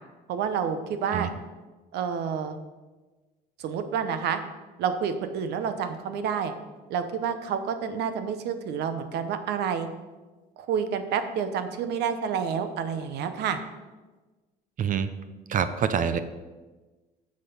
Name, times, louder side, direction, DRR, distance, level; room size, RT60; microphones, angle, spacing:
voice 1, 0.3-1.3 1.9-2.6 3.6-4.4 4.8-6.5 6.9-9.9 10.6-13.6, right 7 dB, 80° right, 9 dB, 1.0 m, -29 dB
voice 2, 14.8-15.1 15.5-16.2, right 7 dB, 50° right, 12 dB, 0.7 m, -25 dB
10.0 x 6.5 x 5.5 m, 1.2 s
cardioid pair, 110°, 17 cm